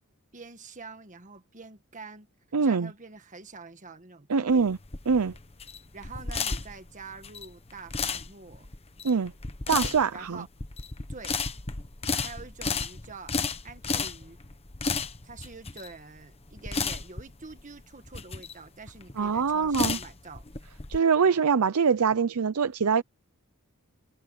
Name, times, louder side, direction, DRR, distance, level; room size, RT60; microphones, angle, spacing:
voice 1, 0.3-2.3 2.6-4.7 5.9-8.7 10.1-10.5 11.1-11.4 12.2-14.4 15.2-20.5, right 4 dB, 35° right, 1.6 m, -46 dB
voice 2, 2.5-2.9 4.3-4.8 5.1-5.3 9.0-9.3 9.7-10.4 12.1-12.2 19.2-20.0 20.9-23.0, right 5 dB, 80° right, 0.6 m, -24 dB
sound 1, 4.5-21.0, left 4 dB, 25° left, 1.1 m, -33 dB
head